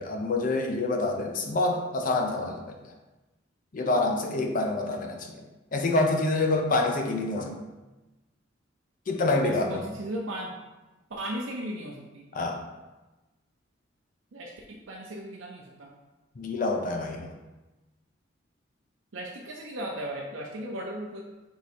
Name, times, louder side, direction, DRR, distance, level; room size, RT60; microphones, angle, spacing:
voice 1, 0.0-2.8 3.7-5.4 5.7-7.6 9.1-9.8 12.3-12.6 16.4-17.3, left 2 dB, 45° left, 3 dB, 0.5 m, -27 dB
voice 2, 9.4-10.5 11.1-12.3 14.3-15.9 19.1-21.2, right 1 dB, 75° right, -2 dB, 0.6 m, -36 dB
4.6 x 2.7 x 4.2 m, 1.1 s
head